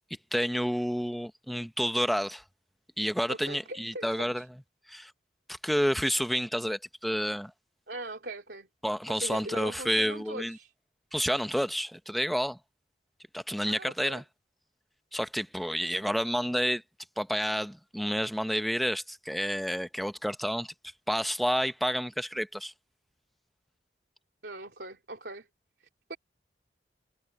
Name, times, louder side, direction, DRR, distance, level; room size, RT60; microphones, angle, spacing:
voice 1, 0.3-2.4 3.0-4.4 4.9-5.1 5.5-7.5 8.8-10.6 11.1-12.6 13.3-14.2 15.1-16.8 17.2-20.7 21.1-22.7, equal, ahead, 0.8 m, -29 dB
voice 2, 3.3-4.5 7.9-8.7 9.1-10.7 13.6-14.2 24.4-25.5 25.8-26.2, right 2 dB, 70° right, 3.2 m, -41 dB
head